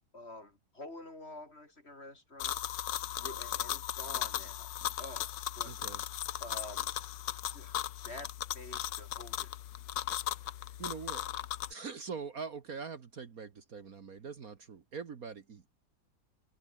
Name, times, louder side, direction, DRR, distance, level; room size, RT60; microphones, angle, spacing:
voice 1, 0.1-2.6 3.2-4.7 5.0-5.7 6.4-6.9 7.5-8.3 8.5-9.5, left 2 dB, 35° left, 4.4 m, -48 dB
sound 1, 2.4-11.7, left 12 dB, 75° left, 1.5 m, -37 dB
voice 2, 5.6-6.0 10.3-10.5 10.8-11.2 11.7-15.7, right 5 dB, 50° right, 1.8 m, -43 dB
omnidirectional pair, 2.0 m